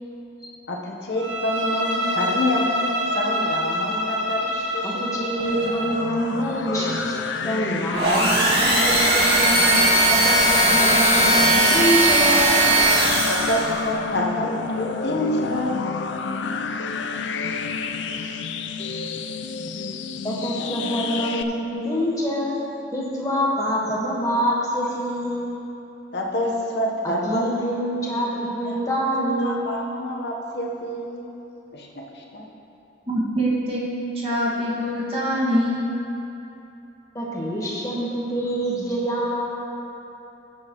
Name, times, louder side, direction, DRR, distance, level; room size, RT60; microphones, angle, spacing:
voice 1, 0.7-2.9 3.1-5.0 13.3-15.8 20.6-20.7 26.1-27.6 28.4-28.8 29.4-31.3 31.7-32.5, left 1 dB, 65° left, -1 dB, 1.2 m, -27 dB
Bowed string instrument, 1.2-6.1, equal, 75° right, 1.1 m, -26 dB
voice 2, 4.5-9.7 10.1-12.7 19.0-19.3 20.2-22.6 22.9-25.6 27.0-29.7 37.1-39.5, equal, 20° left, -5 dB, 1.6 m, -26 dB
sound 1, 5.4-21.4, left 5 dB, 85° left, 0.5 m, -30 dB
sound 2, 7.9-13.7, right 1 dB, 60° right, 2.3 m, -18 dB
voice 3, 33.1-35.9, equal, 30° right, -7 dB, 2.0 m, -24 dB
16.0 x 7.5 x 3.1 m, 2.9 s
head